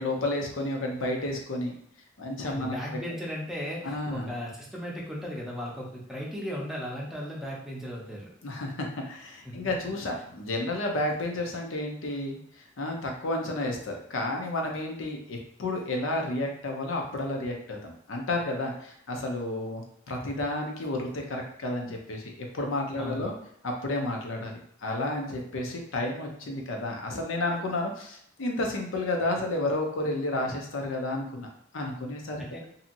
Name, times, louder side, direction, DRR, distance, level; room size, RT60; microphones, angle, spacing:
voice 1, 0.0-1.7 2.2-3.0 3.8-4.3 8.4-23.3 23.6-32.6, left 2 dB, 80° left, 1 dB, 0.6 m, -31 dB
voice 2, 2.4-8.3 9.5-9.6 23.0-23.3 32.4-32.6, equal, ahead, -4 dB, 0.6 m, -36 dB
2.7 x 2.7 x 2.6 m, 0.69 s
head